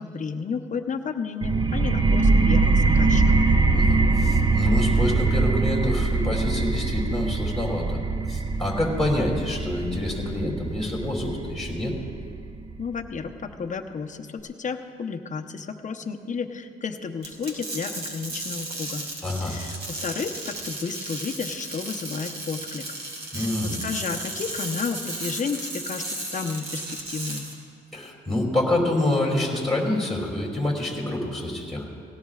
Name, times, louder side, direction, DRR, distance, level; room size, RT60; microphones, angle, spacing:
voice 1, 0.0-3.2 12.8-19.1 19.4-22.9 23.3-27.5, left 5 dB, 40° left, 5 dB, 0.9 m, -32 dB
sound 1, 1.4-12.8, right 3 dB, 20° right, 0.7 m, -22 dB
voice 2, 3.7-8.0 8.3-11.9 19.2-19.6 23.3-23.8 27.9-31.9, left 1 dB, ahead, -3 dB, 2.8 m, -27 dB
sound 2, 17.2-27.5, right 2 dB, 55° right, 2.8 m, -35 dB
18.0 x 17.5 x 2.4 m, 2.3 s
cardioid pair, 90°, 20 cm